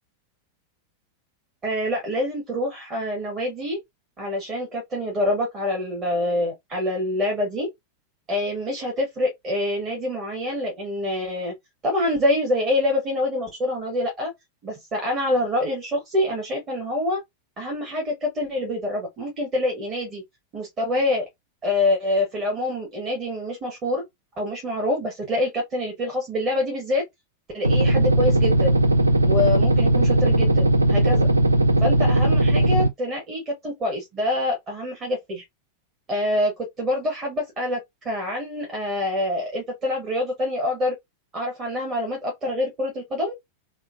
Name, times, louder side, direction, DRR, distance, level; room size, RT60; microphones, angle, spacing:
voice 1, 1.6-3.8 4.2-7.7 8.3-11.5 11.8-14.3 14.6-17.2 17.6-20.2 20.5-21.2 21.6-24.0 24.4-27.0 27.5-28.8 29.2-31.3 31.8-35.4 36.1-37.8 38.0-40.9 41.3-43.3, left 1 dB, 30° right, 1.1 m, -26 dB
sound 1, 27.6-32.9, right 1 dB, 80° right, 0.4 m, -18 dB
3.7 x 2.1 x 2.4 m
figure-of-eight pair, 90°, 0 cm